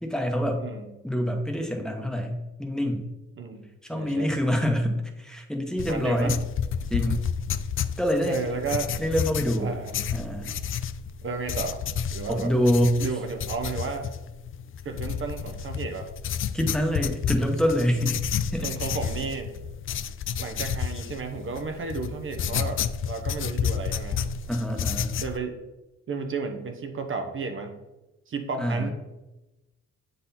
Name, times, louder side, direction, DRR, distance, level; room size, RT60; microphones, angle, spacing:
voice 1, 0.0-0.6 1.0-3.0 3.8-6.4 6.9-7.2 8.0-8.4 9.0-9.8 10.1-10.6 12.3-13.0 16.5-18.2 18.5-18.7 24.5-25.2 28.6-28.9, equal, ahead, 3 dB, 1.1 m, -26 dB
voice 2, 3.4-4.3 5.8-6.4 8.3-8.9 9.6-9.9 11.2-11.8 12.1-12.5 13.0-14.1 14.8-16.1 18.6-19.5 20.4-24.2 25.2-25.6 26.1-27.8 28.3-28.9, right 4 dB, 40° right, 5 dB, 0.9 m, -33 dB
sound 1, 5.8-25.4, left 7 dB, 45° left, 0.4 m, -31 dB
7.4 x 4.0 x 4.2 m, 1.0 s
cardioid pair, 90°, 30 cm